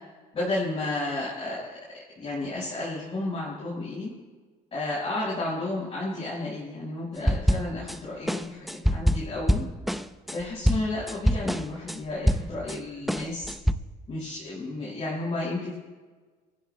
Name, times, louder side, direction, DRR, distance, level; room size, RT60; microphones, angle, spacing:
voice 1, 0.3-1.7 2.1-4.1 4.7-9.6 10.3-13.5 14.1-15.8, left 2 dB, 35° left, -7 dB, 5.0 m, -32 dB
sound 1, 7.3-8.0 8.3-12.8 13.1-13.7, equal, ahead, 0.5 m, -25 dB
28.5 x 15.0 x 2.2 m, 1.4 s
cardioid pair, 110°, 17 cm